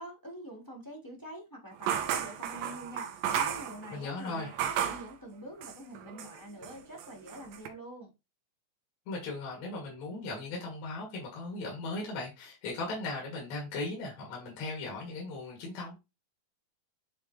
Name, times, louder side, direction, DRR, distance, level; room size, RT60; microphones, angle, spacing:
voice 1, 0.0-8.1, right 1 dB, 20° left, 0.5 m, -46 dB
sound 1, 1.8-5.1 5.6-6.4 6.6-7.7, right 9 dB, 75° right, 2.5 m, -33 dB
voice 2, 3.9-4.6 9.1-16.0, left 2 dB, 80° left, 4.2 m, -38 dB
9.6 x 3.6 x 3.2 m
omnidirectional pair, 4.1 m